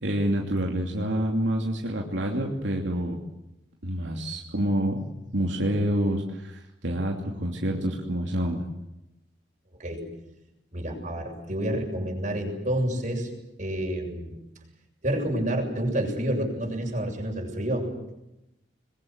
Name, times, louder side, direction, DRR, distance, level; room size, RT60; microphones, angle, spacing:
voice 1, 0.0-3.2 3.8-5.0 5.3-8.6, right 1 dB, 80° right, 0 dB, 2.9 m, -27 dB
voice 2, 10.7-13.3 13.6-14.4 15.0-17.9, right 1 dB, 45° right, 2 dB, 7.3 m, -29 dB
26.5 x 22.0 x 8.0 m, 0.91 s
head